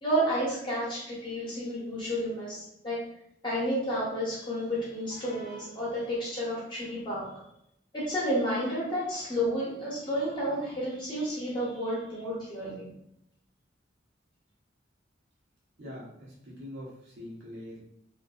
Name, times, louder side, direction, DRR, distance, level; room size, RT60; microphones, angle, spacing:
voice 1, 0.0-3.0 3.4-7.3 7.9-12.9, equal, 25° left, -6 dB, 0.7 m, -31 dB
voice 2, 15.8-17.8, left 1 dB, 75° right, -5 dB, 0.8 m, -43 dB
2.5 x 2.4 x 2.3 m, 0.75 s
head